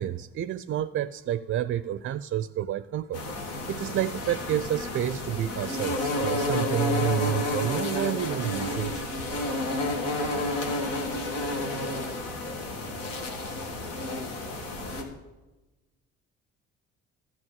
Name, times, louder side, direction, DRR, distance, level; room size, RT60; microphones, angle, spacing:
voice 1, 0.0-9.0, right 11 dB, 35° right, 0.4 m, -29 dB
sound 1, 3.1-15.0, left 2 dB, 75° left, 1.7 m, -31 dB
13.0 x 5.7 x 8.9 m
figure-of-eight pair, 50°, 37 cm